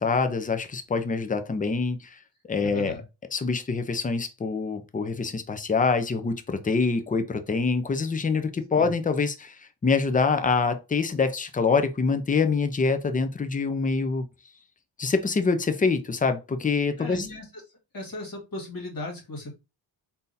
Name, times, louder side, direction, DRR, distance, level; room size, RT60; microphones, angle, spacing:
voice 1, 0.0-2.2 2.5-3.0 3.3-14.3 15.0-17.3, left 4 dB, 20° left, 0.5 m, -25 dB
voice 2, 2.6-3.0 8.8-8.9 17.0-17.4 17.9-19.5, left 1 dB, 45° left, 1.9 m, -36 dB
3.6 x 2.7 x 2.6 m
cardioid pair, 80°, 45 cm